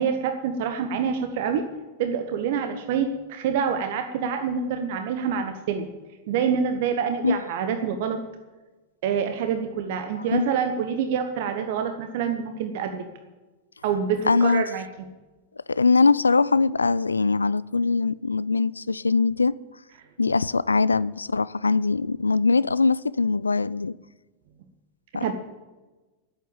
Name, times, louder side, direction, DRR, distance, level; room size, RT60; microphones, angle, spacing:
voice 1, 0.0-1.6 2.0-5.9 6.3-8.2 9.0-13.0 13.8-14.8 25.2-25.3, right 7 dB, 50° right, 1.1 m, -26 dB
voice 2, 14.3-14.6 15.7-19.5 20.2-23.9 25.1-25.3, left 4 dB, 80° left, 0.3 m, -22 dB
12.0 x 8.4 x 8.9 m
figure-of-eight pair, 90°, 0 cm